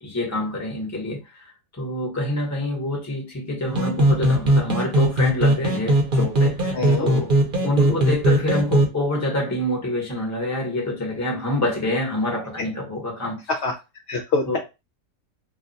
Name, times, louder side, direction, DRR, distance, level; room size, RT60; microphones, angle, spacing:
voice 1, 0.0-7.3 7.6-13.4 14.4-14.6, left 1 dB, 15° left, 0.8 m, -26 dB
sound 1, 3.7-8.9, right 1 dB, 40° right, 0.9 m, -20 dB
voice 2, 6.7-7.0 7.9-8.0 13.5-13.7 14.1-14.6, left 4 dB, 65° left, 0.7 m, -25 dB
2.5 x 2.2 x 3.8 m
omnidirectional pair, 1.5 m